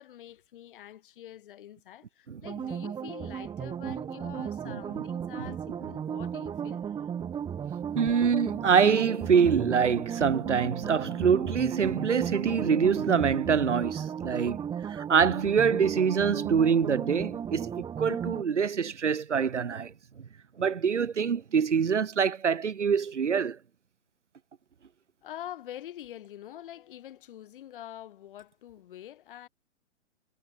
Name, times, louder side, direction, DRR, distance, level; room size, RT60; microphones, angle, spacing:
voice 1, 0.0-7.1 8.1-8.2 25.2-29.5, left 12 dB, 45° left, 3.0 m, -45 dB
sound 1, 2.4-18.4, right 8 dB, 10° right, 2.2 m, -35 dB
voice 2, 7.9-14.6 14.8-19.9 20.6-23.6, right 6 dB, 75° right, 1.2 m, -25 dB
figure-of-eight pair, 125°, 36 cm